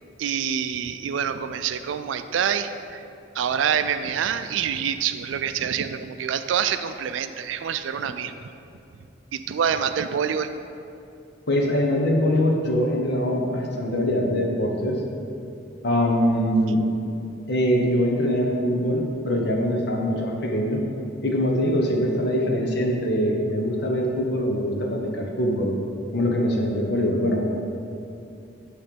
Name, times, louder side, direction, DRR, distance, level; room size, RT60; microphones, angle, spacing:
voice 1, 0.2-3.0 3.3-8.5 9.3-10.5, right 8 dB, 75° right, 10 dB, 0.3 m, -26 dB
voice 2, 11.5-15.0 15.8-16.8 17.5-20.8 21.2-25.7 26.1-27.4, equal, 60° left, 1 dB, 0.9 m, -23 dB
8.5 x 3.2 x 5.2 m, 2.7 s
head